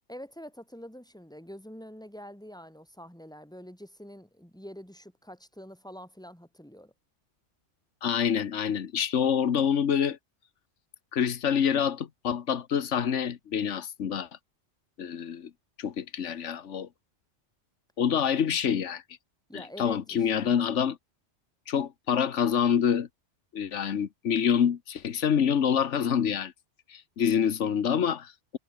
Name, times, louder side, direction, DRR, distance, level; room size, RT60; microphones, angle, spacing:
voice 1, 0.1-6.9 19.5-20.6, equal, 5° left, 4.7 m, -46 dB
voice 2, 8.0-10.2 11.1-14.3 15.0-15.5 15.8-16.9 18.0-19.0 19.5-21.0 21.7-23.1 23.5-26.5 26.9-28.6, left 8 dB, 85° left, 1.4 m, -26 dB
omnidirectional pair, 1.2 m